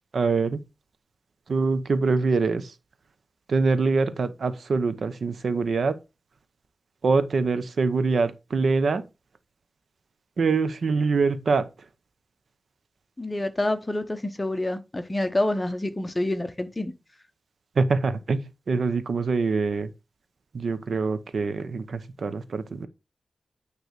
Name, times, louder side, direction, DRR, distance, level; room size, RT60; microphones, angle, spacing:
voice 1, 0.1-0.6 1.5-2.7 3.5-6.0 7.0-9.0 10.4-11.7 17.8-19.9 20.5-22.9, right 4 dB, 65° right, 0.9 m, -24 dB
voice 2, 13.2-16.9, left 1 dB, 15° left, 0.9 m, -27 dB
9.4 x 3.3 x 6.5 m
wide cardioid pair, 155°, 0 cm